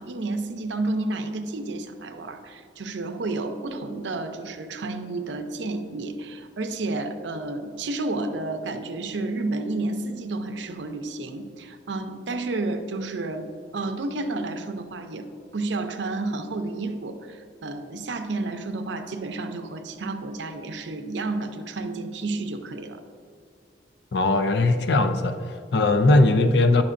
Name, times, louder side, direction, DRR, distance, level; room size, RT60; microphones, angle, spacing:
voice 1, 0.0-15.3 15.5-23.0, right 2 dB, 80° right, 7 dB, 0.6 m, -31 dB
voice 2, 24.1-26.8, left 2 dB, 65° left, 9 dB, 0.4 m, -20 dB
9.8 x 5.9 x 2.5 m, 2.3 s
head